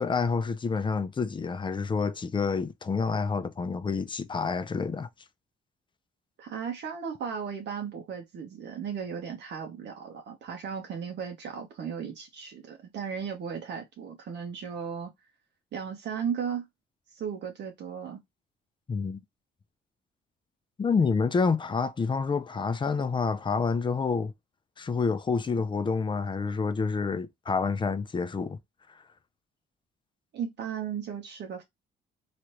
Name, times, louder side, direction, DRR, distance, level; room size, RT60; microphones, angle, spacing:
voice 1, 0.0-5.1 18.9-19.2 20.8-24.3 24.8-28.6 28.9-29.0, left 5 dB, 25° left, 0.4 m, -28 dB
voice 2, 6.4-15.1 15.7-16.7 17.1-18.2 30.3-31.6, right 7 dB, 65° right, 0.7 m, -36 dB
3.1 x 2.4 x 2.9 m
cardioid pair, 90°, 20 cm